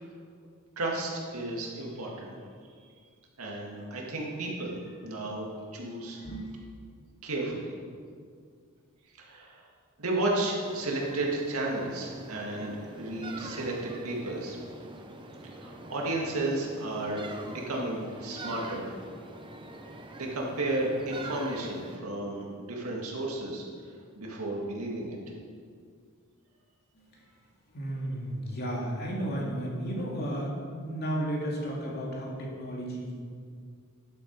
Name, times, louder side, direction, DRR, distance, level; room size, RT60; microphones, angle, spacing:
voice 1, 0.8-2.3 3.4-6.2 7.2-7.8 9.2-9.7 10.0-14.6 15.5-19.0 20.2-23.6 24.2-25.2, right 2 dB, 80° right, -2 dB, 2.1 m, -33 dB
voice 2, 6.2-6.5 26.9-27.0 27.7-33.1, right 1 dB, 50° left, -3 dB, 2.4 m, -33 dB
sound 1, 10.6-22.0, right 2 dB, 25° right, 0.7 m, -44 dB
11.5 x 8.0 x 4.7 m, 2.1 s
head